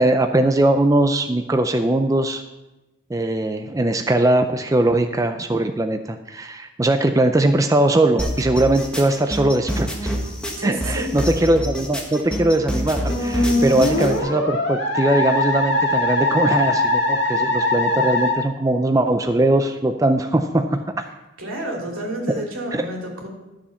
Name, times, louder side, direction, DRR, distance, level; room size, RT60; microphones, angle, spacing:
voice 1, 0.0-2.4 3.1-10.2 10.6-21.1 22.7-22.8, right 1 dB, 15° right, 6 dB, 0.4 m, -20 dB
sound 1, 8.2-14.2, equal, 5° left, 1.4 m, -27 dB
voice 2, 10.6-11.2 21.4-23.3, right 1 dB, 85° right, -1 dB, 3.1 m, -30 dB
Musical instrument, 13.1-18.3, left 2 dB, 55° left, 2.0 m, -21 dB
12.5 x 7.1 x 5.8 m, 1.0 s
head